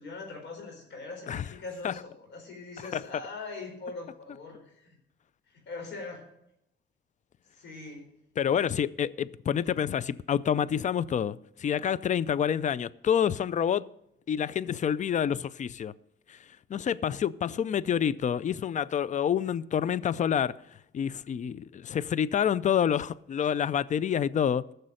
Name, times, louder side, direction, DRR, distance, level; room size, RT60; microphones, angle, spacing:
voice 1, 0.0-5.0 5.5-6.2 7.5-8.0, left 3 dB, 65° left, 4.6 m, -42 dB
voice 2, 8.4-13.9 14.3-15.9 16.3-16.4 16.7-20.6 20.9-24.6, left 8 dB, 40° left, 0.4 m, -28 dB
14.0 x 6.6 x 6.4 m
cardioid pair, 90°, 20 cm